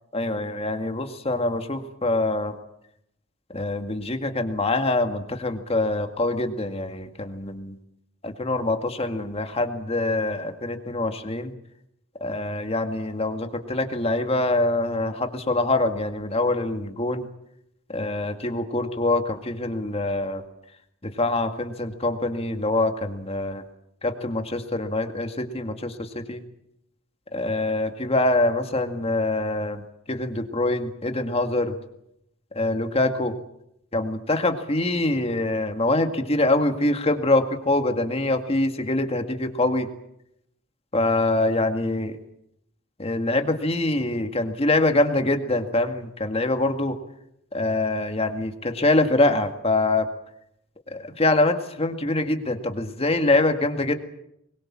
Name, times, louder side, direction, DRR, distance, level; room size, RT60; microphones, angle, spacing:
voice 1, 0.1-2.5 3.5-7.8 8.2-11.5 12.2-17.3 17.9-20.4 21.0-23.6 24.0-26.4 27.3-31.8 32.6-33.3 33.9-39.9 40.9-42.2 43.0-47.0 47.5-50.1 50.9-53.9, left 2 dB, 30° left, 6 dB, 2.0 m, -24 dB
23.5 x 21.5 x 7.4 m, 0.79 s
head